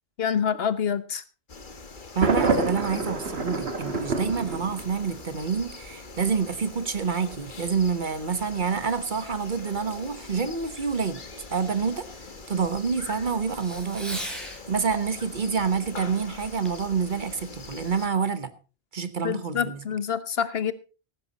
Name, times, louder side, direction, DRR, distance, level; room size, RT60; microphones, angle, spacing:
voice 1, 0.2-1.2 19.2-20.7, left 7 dB, 75° left, 1.2 m, -27 dB
sound 1, 1.5-18.1, left 3 dB, 50° left, 1.6 m, -43 dB
voice 2, 2.1-11.2 11.5-12.1 12.5-14.4 14.7-18.5 18.9-19.8, right 5 dB, 50° right, 1.3 m, -27 dB
Thunder, 2.2-5.2, right 4 dB, 85° right, 1.9 m, -27 dB
Fireworks, 3.9-14.7 16.7-16.9 17.5-17.6, equal, ahead, 4.4 m, -46 dB
15.0 x 11.5 x 4.1 m
omnidirectional pair, 1.0 m